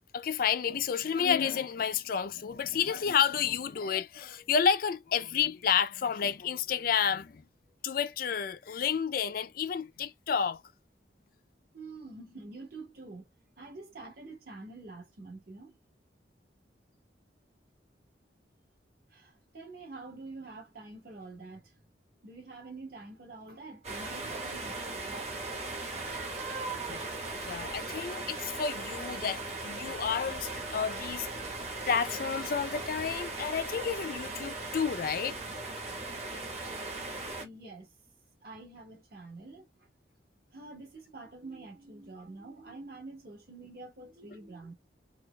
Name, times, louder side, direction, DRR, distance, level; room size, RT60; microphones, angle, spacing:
voice 1, 0.1-7.4 7.8-10.6 26.9-27.0 27.4-31.3 31.9-35.4, left 7 dB, 55° left, 0.4 m, -30 dB
voice 2, 11.7-13.3 13.6-15.8 19.1-21.8 22.2-25.4 25.9-26.3 26.6-26.7 37.4-37.9 38.4-39.9 40.5-44.7, right 3 dB, 55° right, 1.6 m, -47 dB
sound 1, 23.8-37.4, right 3 dB, 40° right, 1.1 m, -38 dB
4.5 x 2.4 x 2.2 m
head